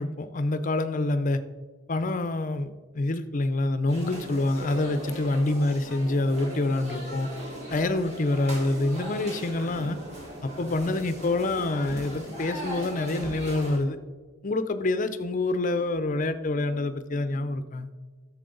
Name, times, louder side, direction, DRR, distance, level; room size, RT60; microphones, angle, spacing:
voice 1, 0.0-1.4 1.9-7.3 7.7-10.0 10.4-14.0 14.4-17.9, left 2 dB, 35° left, 12 dB, 0.5 m, -26 dB
sound 1, 3.9-13.8, equal, 30° right, 2.5 m, -38 dB
11.5 x 7.4 x 3.9 m, 1.4 s
head